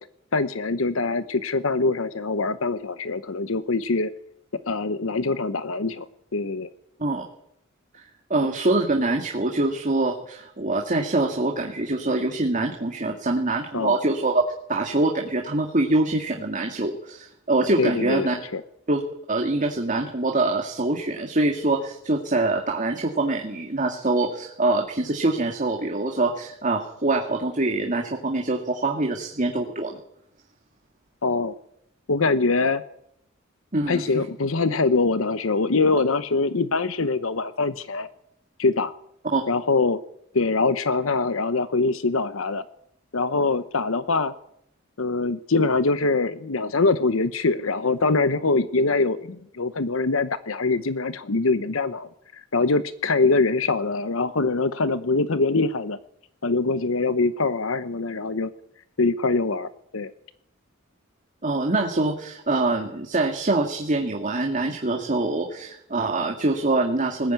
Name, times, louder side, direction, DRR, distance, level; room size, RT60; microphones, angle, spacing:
voice 1, 0.3-4.1 4.5-6.1 6.3-6.7 13.7-14.0 17.8-18.6 31.2-31.5 32.1-32.8 33.9-38.1 38.6-38.9 39.5-40.0 40.3-42.7 43.1-44.3 45.0-56.0 56.4-58.5 59.0-60.1, left 3 dB, 80° left, 13 dB, 0.9 m, -23 dB
voice 2, 8.3-14.4 14.7-18.4 18.9-19.0 19.3-30.0 33.7-34.0 39.3-39.4 61.4-67.3, right 2 dB, 40° right, 2 dB, 2.1 m, -24 dB
20.0 x 15.0 x 9.3 m, 0.75 s
head